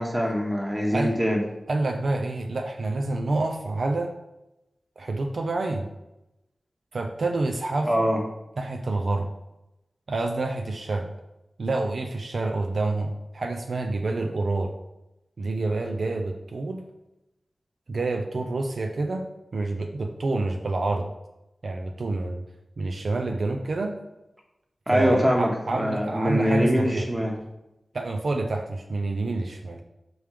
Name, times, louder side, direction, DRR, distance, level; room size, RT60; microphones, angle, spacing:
voice 1, 0.0-1.4 7.8-8.2 24.9-27.4, equal, 15° right, 0 dB, 1.2 m, -23 dB
voice 2, 1.7-4.1 5.0-5.9 6.9-8.1 8.6-9.3 10.1-11.1 11.6-14.7 15.4-16.8 17.9-19.3 19.5-21.1 21.6-22.4 22.8-23.9 24.9-27.1 27.9-29.8, right 2 dB, 70° right, 4 dB, 0.5 m, -28 dB
6.1 x 3.5 x 4.9 m, 0.92 s
wide cardioid pair, 95°, 0 cm